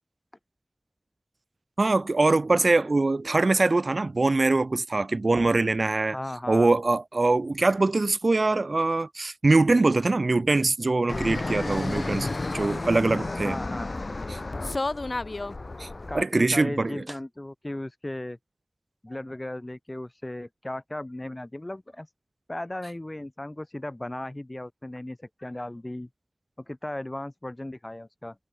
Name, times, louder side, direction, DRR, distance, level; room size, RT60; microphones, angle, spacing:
voice 1, 1.8-6.2 6.5-13.6 14.3-14.4 15.8-15.9 16.1-17.0, right 3 dB, 75° right, 0.6 m, -23 dB
voice 2, 6.1-6.7 13.4-14.0 16.1-18.4 19.0-22.1 22.5-26.1 26.7-28.4, left 1 dB, 30° left, 3.6 m, -36 dB
Fixed-wing aircraft airplane, 11.1-16.2, left 2 dB, 65° left, 5.5 m, -31 dB
wide cardioid pair, 55°, 0 cm